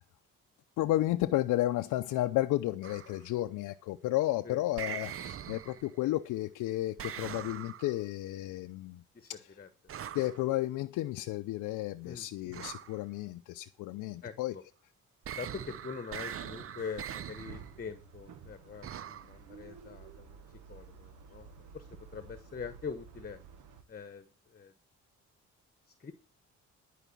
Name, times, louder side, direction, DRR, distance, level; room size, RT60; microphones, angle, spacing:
voice 1, 0.8-9.0 10.1-14.5, left 16 dB, 90° left, 0.6 m, -32 dB
sound 1, 2.8-3.2 4.8-6.0 7.0-8.0 9.9-10.4 12.5-13.0 15.2-17.7 18.8-19.3, right 9 dB, 45° right, 0.7 m, -42 dB
voice 2, 14.2-14.6 15.4-20.4 20.7-23.4 23.9-24.7 25.9-26.1, left 6 dB, 30° left, 1.1 m, -43 dB
sound 2, 16.8-23.8, right 6 dB, 80° right, 1.6 m, -52 dB
11.0 x 5.0 x 8.4 m
cardioid pair, 90°, 30 cm